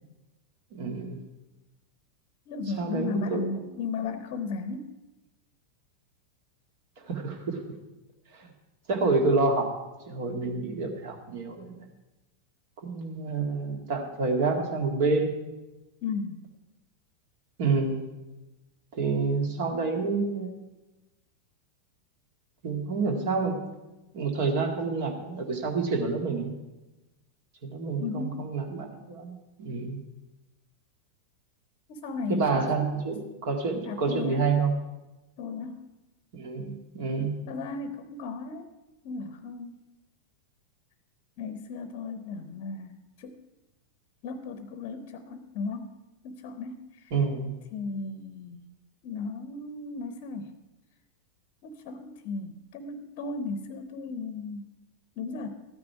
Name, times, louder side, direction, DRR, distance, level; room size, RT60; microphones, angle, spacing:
voice 1, 0.7-1.2 2.8-3.7 7.0-7.6 8.3-8.5 8.9-9.7 10.1-11.8 12.8-15.3 17.6-18.0 18.9-20.5 22.6-23.6 24.1-26.5 27.6-29.3 29.6-30.0 32.3-34.8 36.3-37.4 47.1-47.6, right 4 dB, 50° right, 3 dB, 2.0 m, -28 dB
voice 2, 2.5-4.9 16.0-16.4 28.0-28.4 31.9-32.8 33.9-34.4 35.4-35.8 37.5-38.7 39.0-39.7 41.4-43.3 44.2-46.0 46.2-46.9 47.7-48.6 49.0-50.5 51.6-54.6 55.2-55.6, left 4 dB, 45° left, 10 dB, 0.8 m, -35 dB
13.5 x 9.7 x 4.7 m, 1.1 s
figure-of-eight pair, 90°, 0 cm